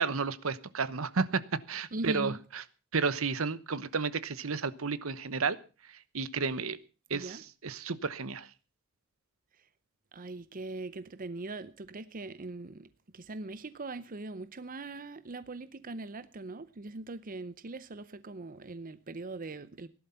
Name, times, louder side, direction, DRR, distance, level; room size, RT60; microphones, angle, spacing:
voice 1, 0.0-1.4 1.7-2.6 2.9-5.6 5.9-6.8 7.1-8.5, right 4 dB, 75° right, 1.0 m, -32 dB
voice 2, 1.9-2.4 7.1-7.4 9.6-9.7 10.1-19.9, right 2 dB, 40° right, 0.7 m, -41 dB
17.5 x 11.5 x 5.7 m
head